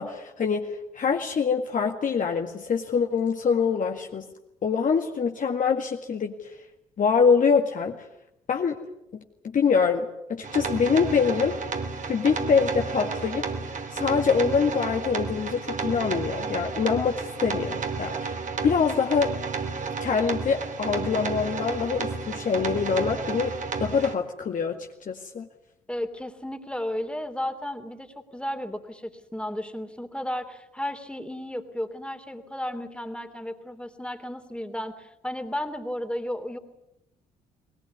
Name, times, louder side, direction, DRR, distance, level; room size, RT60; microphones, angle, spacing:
voice 1, 0.0-4.3 4.6-6.6 7.0-8.0 8.5-8.8 9.1-11.6 12.1-19.3 20.0-23.5 23.8-25.5, left 6 dB, 45° left, 2 dB, 2.0 m, -25 dB
sound 1, 10.4-24.1, right 4 dB, 40° right, 2.8 m, -32 dB
voice 2, 25.9-36.6, left 1 dB, 5° left, 7 dB, 3.1 m, -33 dB
21.5 x 20.0 x 9.5 m, 0.85 s
figure-of-eight pair, 45°, 19 cm